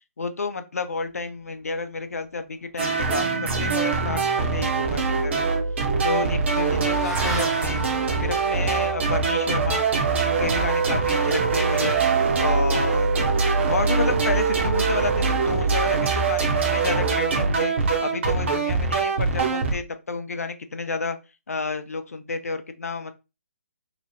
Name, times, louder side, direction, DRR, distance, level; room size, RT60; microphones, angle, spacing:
voice 1, 0.2-5.6 6.0-7.8 8.2-9.9 10.2-12.0 12.4-13.3 13.7-17.7 18.0-21.2 21.5-23.1, left 4 dB, 70° left, 9 dB, 0.5 m, -30 dB
sound 1, 2.8-19.8, right 4 dB, 50° right, 0.7 m, -23 dB
Motorcycle / Accelerating revving vroom, 4.4-13.0, right 2 dB, 5° right, 0.7 m, -40 dB
2.9 x 2.1 x 4.1 m, 0.27 s
figure-of-eight pair, 140°, 8 cm